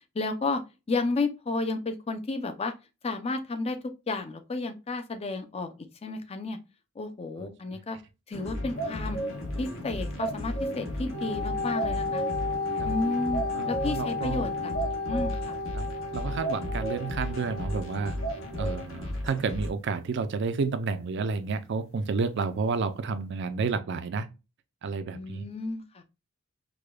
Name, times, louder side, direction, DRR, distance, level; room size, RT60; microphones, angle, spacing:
voice 1, 0.1-0.6 0.9-2.7 3.0-5.7 6.0-6.6 7.0-8.0 8.3-9.2 9.6-12.2 12.8-14.5 15.1-15.6 25.1-26.0, left 3 dB, 30° left, 0.5 m, -32 dB
sound 1, 8.3-19.7, left 1 dB, 65° left, 1.0 m, -36 dB
sound 2, 8.8-9.6 9.8-11.0 11.3-11.4 11.7-12.6 12.9-13.0 13.3-14.2 14.5-15.6 15.9-16.0 16.4-17.2 17.6-17.7 18.2-19.0, right 3 dB, 80° left, 1.5 m, -34 dB
Wind instrument woodwind instrument, 11.1-18.8, left 3 dB, 85° right, 0.8 m, -33 dB
voice 2, 13.5-14.5 15.7-15.9 16.1-18.2 18.6-24.3 24.8-25.4, right 4 dB, 55° right, 0.4 m, -30 dB
4.8 x 2.2 x 2.2 m
head